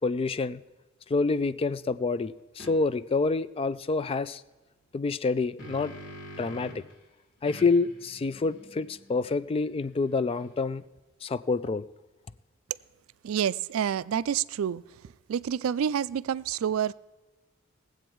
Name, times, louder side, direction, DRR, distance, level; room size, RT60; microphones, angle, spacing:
voice 1, 0.0-0.6 1.1-4.4 4.9-5.9 6.4-6.8 7.4-10.8 11.2-11.9, left 3 dB, 30° left, 16 dB, 0.3 m, -27 dB
sound 1, 2.6-2.8 5.2-6.9 7.5-10.8, equal, 60° left, 2.1 m, -46 dB
voice 2, 13.2-14.8 15.3-16.9, right 8 dB, 90° right, 18 dB, 0.3 m, -28 dB
19.5 x 7.9 x 4.6 m, 1.1 s
head